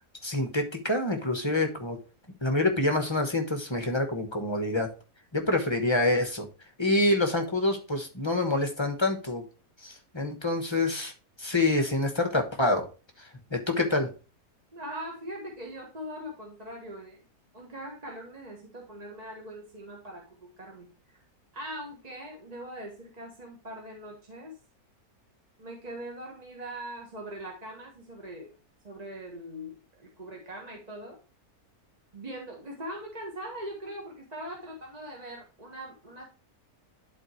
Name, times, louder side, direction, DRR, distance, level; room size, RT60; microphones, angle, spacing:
voice 1, 0.2-2.0 2.4-4.9 5.3-6.5 6.8-9.4 9.8-11.1 11.4-12.9 13.5-14.1, left 2 dB, 20° left, 4 dB, 1.0 m, -26 dB
voice 2, 14.7-17.3 17.5-21.2 21.5-24.6 25.6-28.5 28.8-31.2 32.1-36.3, right 1 dB, 25° right, -1 dB, 1.5 m, -41 dB
11.0 x 4.3 x 3.1 m, 0.33 s
omnidirectional pair, 1.6 m